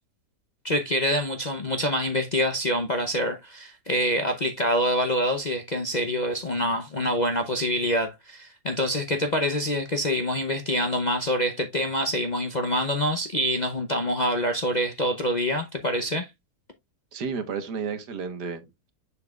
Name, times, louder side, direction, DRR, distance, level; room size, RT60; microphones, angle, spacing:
voice 1, 0.6-16.3, equal, 45° left, 0.6 m, -26 dB
voice 2, 17.1-18.9, right 5 dB, 80° right, 1.8 m, -32 dB
7.0 x 6.6 x 2.3 m
omnidirectional pair, 1.8 m